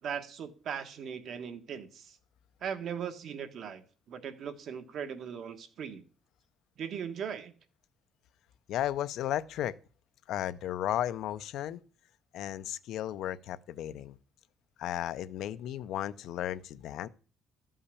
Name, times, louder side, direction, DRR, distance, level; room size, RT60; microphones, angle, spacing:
voice 1, 0.0-2.2 2.6-6.0 6.8-7.5, right 7 dB, 45° right, 1.3 m, -39 dB
voice 2, 8.7-9.7 10.3-11.8 12.3-14.2 14.8-17.1, left 12 dB, 65° left, 0.6 m, -34 dB
13.0 x 5.6 x 8.3 m
cardioid pair, 175°, 0 cm